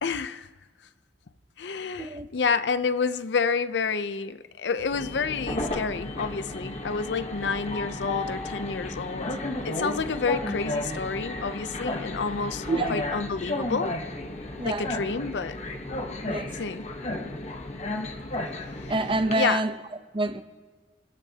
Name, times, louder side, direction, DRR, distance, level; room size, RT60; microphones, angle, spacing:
voice 1, 0.0-0.5 1.6-9.3 9.6-13.9 14.6-15.6 16.5-16.8 18.8-18.9 19.3-19.6, left 5 dB, 80° left, 0.6 m, -29 dB
Train, 4.9-19.3, left 2 dB, 40° left, 1.0 m, -33 dB
voice 2, 18.9-19.7 20.1-20.4, right 2 dB, 30° right, 0.7 m, -26 dB
29.5 x 12.5 x 2.8 m
head